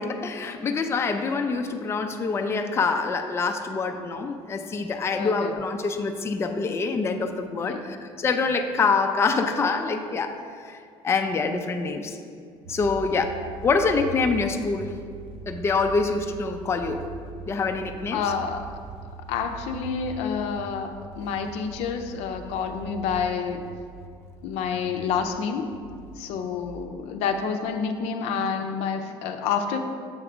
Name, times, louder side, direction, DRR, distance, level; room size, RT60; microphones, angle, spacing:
voice 1, 0.0-10.8 11.0-12.2 12.7-13.3 13.6-14.9 15.5-17.0 17.5-18.2, left 4 dB, 25° left, 5 dB, 0.4 m, -25 dB
voice 2, 5.2-5.5 7.6-7.8 18.1-18.7 19.3-23.6 24.4-25.8 26.2-29.8, left 6 dB, 75° left, 6 dB, 0.5 m, -28 dB
sound 1, 12.6-26.9, right 4 dB, 65° right, 0.5 m, -42 dB
7.1 x 3.3 x 4.9 m, 2.2 s
cardioid pair, 105°, 11 cm